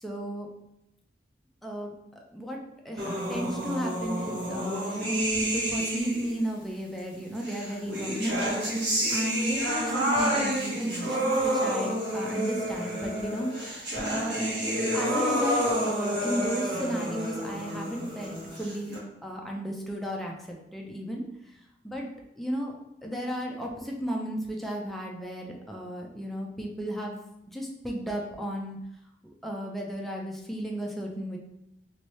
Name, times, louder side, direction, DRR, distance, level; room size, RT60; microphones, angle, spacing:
voice 1, 0.0-0.5 1.6-1.9 2.3-2.6 2.8-8.7 9.1-13.5 14.1-14.4 14.9-21.2 21.8-22.1 22.4-22.8 23.0-27.1 27.5-28.8 29.4-31.4, equal, ahead, -1 dB, 0.5 m, -34 dB
sound 1, 3.0-6.4 7.4-19.0, equal, 65° right, 1.2 m, -29 dB
3.0 x 2.6 x 3.1 m, 0.83 s
head